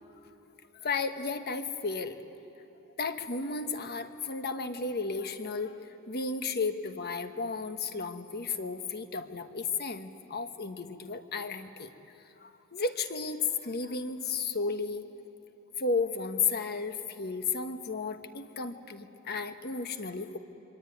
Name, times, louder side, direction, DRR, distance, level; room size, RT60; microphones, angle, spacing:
voice 1, 0.8-2.2 3.0-11.9 12.4-15.1 15.8-20.4, left 4 dB, 50° left, 8 dB, 1.2 m, -33 dB
26.0 x 23.0 x 9.3 m, 2.9 s
head